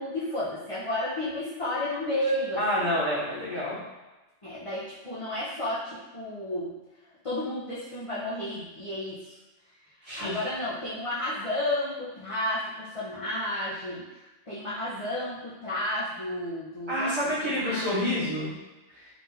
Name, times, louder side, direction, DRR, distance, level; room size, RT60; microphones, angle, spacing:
voice 1, 0.0-2.6 4.4-6.7 7.2-9.4 10.1-14.2 14.5-17.1 17.4-17.9, left 1 dB, 35° left, -9 dB, 0.6 m, -32 dB
voice 2, 2.6-3.8 10.0-10.4 16.9-18.5 18.9-19.1, left 1 dB, 25° right, -10 dB, 1.1 m, -28 dB
4.5 x 2.7 x 2.7 m, 1.1 s
omnidirectional pair, 1.4 m